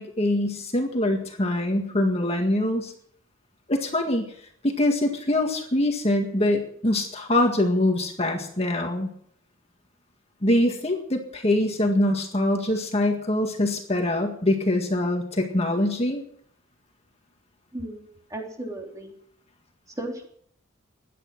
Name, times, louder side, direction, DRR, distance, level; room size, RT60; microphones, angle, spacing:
voice 1, 0.0-2.9 3.7-4.3 4.6-9.1 10.4-16.2, left 1 dB, 30° left, 3 dB, 1.8 m, -24 dB
voice 2, 17.7-19.1 20.0-20.3, right 1 dB, 15° right, 1 dB, 3.2 m, -35 dB
17.0 x 11.0 x 6.1 m, 0.63 s
head